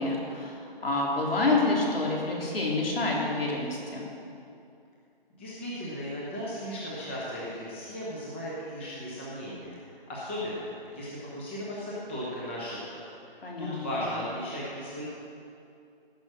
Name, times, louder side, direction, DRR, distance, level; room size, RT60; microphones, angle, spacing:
voice 1, 0.0-4.1 13.4-14.1, left 2 dB, 70° left, -2 dB, 3.5 m, -28 dB
voice 2, 5.3-15.1, equal, 10° left, -7 dB, 1.1 m, -36 dB
17.5 x 6.2 x 6.6 m, 2.6 s
hypercardioid pair, 175°, 30 cm